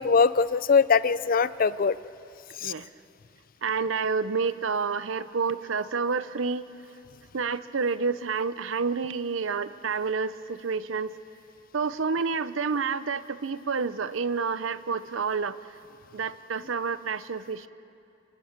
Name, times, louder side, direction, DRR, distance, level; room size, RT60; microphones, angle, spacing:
voice 1, 0.0-2.0 2.6-2.7, left 5 dB, 45° left, 16 dB, 0.5 m, -22 dB
voice 2, 3.6-6.7 7.3-11.1 11.7-15.6 16.1-17.7, right 5 dB, 80° right, 14 dB, 0.7 m, -29 dB
27.0 x 12.5 x 8.8 m, 2.6 s
head